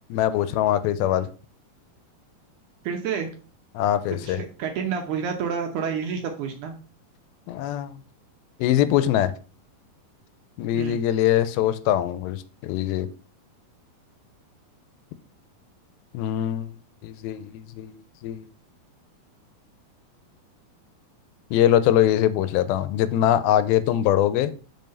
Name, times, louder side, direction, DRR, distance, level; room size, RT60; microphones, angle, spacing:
voice 1, 0.1-1.3 3.7-4.4 7.5-7.9 8.6-9.3 10.6-13.1 16.1-16.7 17.0-18.5 21.5-24.5, left 11 dB, 85° left, 2.4 m, -22 dB
voice 2, 2.8-3.3 4.2-6.8 10.7-11.0, right 6 dB, 70° right, 1.9 m, -29 dB
5.5 x 5.4 x 5.3 m
omnidirectional pair, 4.3 m